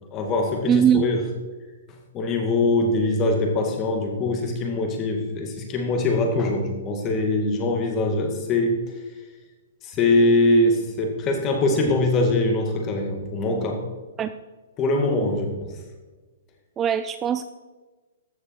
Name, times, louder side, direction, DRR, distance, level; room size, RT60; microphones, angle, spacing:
voice 1, 0.1-1.2 2.1-8.8 9.9-13.8 14.8-15.7, left 2 dB, 25° left, 3 dB, 2.1 m, -22 dB
voice 2, 0.7-1.1 14.2-14.3 16.8-17.5, right 9 dB, 20° right, 11 dB, 0.4 m, -21 dB
14.5 x 6.7 x 4.6 m, 1.3 s
hypercardioid pair, 140°, 0 cm